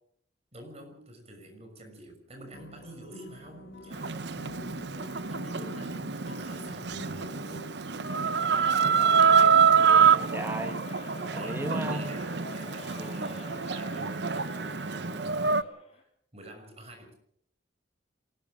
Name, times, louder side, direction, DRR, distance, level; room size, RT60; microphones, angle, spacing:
voice 1, 0.5-7.8 11.2-17.1, right 1 dB, 35° right, 5 dB, 6.2 m, -48 dB
sound 1, 2.5-9.0, left 1 dB, 75° left, 2.3 m, -47 dB
Chicken rooster, 3.9-15.6, right 6 dB, 65° right, 0.9 m, -26 dB
sound 2, 8.1-16.0, left 2 dB, 35° left, 4.1 m, -46 dB
voice 2, 8.7-12.0 13.0-13.4, right 1 dB, 10° right, 7 dB, 2.1 m, -39 dB
27.0 x 19.5 x 5.1 m, 0.64 s
head